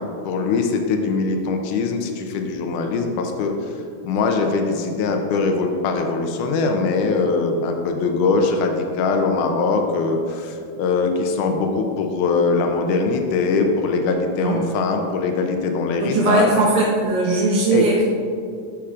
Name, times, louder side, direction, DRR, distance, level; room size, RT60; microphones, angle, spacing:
voice 1, 0.0-16.5 17.7-18.0, left 4 dB, 90° left, 4 dB, 2.2 m, -22 dB
voice 2, 16.0-17.9, right 3 dB, 80° right, -8 dB, 2.7 m, -19 dB
13.0 x 5.8 x 2.4 m, 2.4 s
omnidirectional pair, 3.5 m